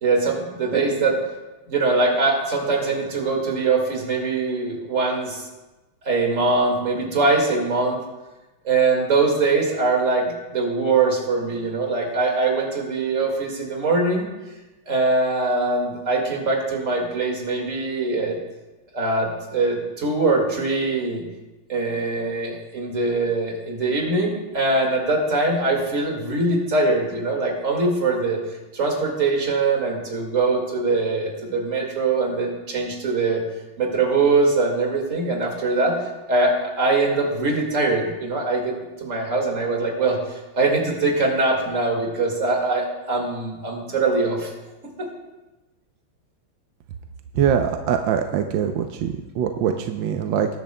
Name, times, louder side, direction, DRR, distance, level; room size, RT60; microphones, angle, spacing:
voice 1, 0.0-1.2 1.7-5.5 6.0-8.0 8.6-14.3 14.9-18.4 18.9-21.3 21.7-28.4 28.7-33.4 33.8-44.5 45.0-45.1, right 3 dB, 40° right, 0 dB, 2.2 m, -22 dB
voice 2, 47.3-50.5, right 8 dB, 70° right, 5 dB, 1.2 m, -23 dB
20.5 x 10.5 x 2.2 m, 1.1 s
omnidirectional pair, 2.3 m